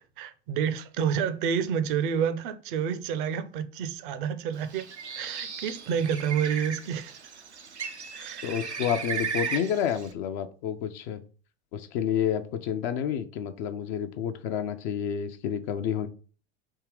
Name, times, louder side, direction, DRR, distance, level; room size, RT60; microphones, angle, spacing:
voice 1, 0.2-7.2 8.1-8.6, right 7 dB, 50° right, 0.6 m, -29 dB
Bird, 4.6-10.1, right 6 dB, 90° right, 0.6 m, -36 dB
voice 2, 8.4-11.2 11.7-16.1, left 9 dB, 45° left, 0.5 m, -29 dB
3.7 x 2.8 x 4.7 m
figure-of-eight pair, 85°, 33 cm